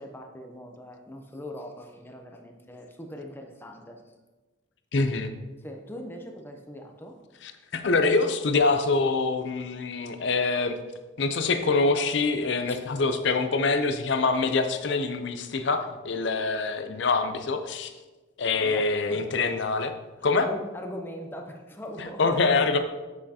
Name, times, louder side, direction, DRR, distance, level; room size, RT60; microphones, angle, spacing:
voice 1, 0.0-4.0 5.6-7.2 12.7-12.8 18.6-19.2 20.2-22.4, equal, 10° left, 2 dB, 0.6 m, -41 dB
voice 2, 4.9-5.3 7.4-10.8 11.2-17.9 18.4-19.9 20.2-20.5 22.0-22.8, left 3 dB, 60° left, 8 dB, 0.5 m, -25 dB
7.4 x 6.3 x 2.8 m, 1.2 s
head